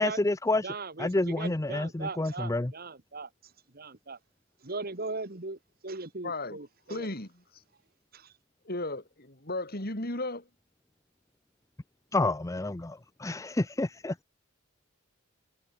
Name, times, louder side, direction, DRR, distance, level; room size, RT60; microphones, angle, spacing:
voice 1, 0.0-0.7 1.0-2.7 12.1-14.1, left 2 dB, 15° left, 0.5 m, -29 dB
voice 2, 0.6-3.3 3.7-4.2 4.6-7.1 8.1-8.3, right 3 dB, 45° right, 1.9 m, -39 dB
voice 3, 6.2-6.6 6.9-7.4 8.6-10.5, left 2 dB, 45° left, 4.5 m, -35 dB
head